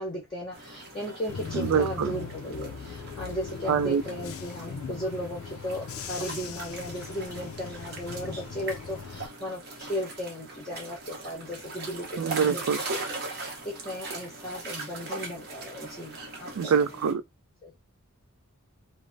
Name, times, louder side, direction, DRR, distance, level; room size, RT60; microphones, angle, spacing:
voice 1, 0.0-12.6 13.1-17.1 17.6-17.7, equal, 20° left, 0.7 m, -36 dB
sound 1, 0.5-17.1, right 3 dB, 50° right, 0.8 m, -40 dB
Bus / Engine, 1.3-9.3, left 5 dB, 75° left, 0.4 m, -40 dB
voice 2, 1.5-2.1 3.7-4.0 12.2-12.8 16.5-17.2, right 6 dB, 75° right, 0.3 m, -25 dB
3.2 x 2.0 x 2.5 m
head